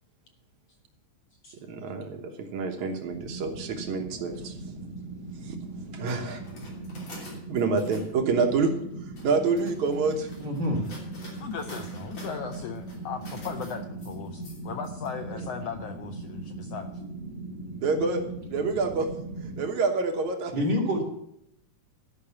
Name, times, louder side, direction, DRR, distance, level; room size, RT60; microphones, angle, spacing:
voice 1, 1.7-4.5 5.5-5.6 5.9-6.4 7.5-8.7 9.2-10.3 17.8-18.2 18.5-19.1 19.4-20.5, right 4 dB, 70° right, 3 dB, 2.5 m, -27 dB
sound 1, 3.1-19.7, right 2 dB, 50° right, 3.2 m, -39 dB
sound 2, 6.1-8.1 8.9-15.1, left 2 dB, 55° left, 4.3 m, -48 dB
voice 2, 10.4-10.8 20.5-21.0, left 1 dB, 35° right, -2 dB, 3.2 m, -26 dB
voice 3, 11.4-16.9, left 7 dB, 75° left, 6 dB, 1.5 m, -37 dB
12.0 x 6.0 x 8.5 m, 0.73 s
omnidirectional pair, 3.5 m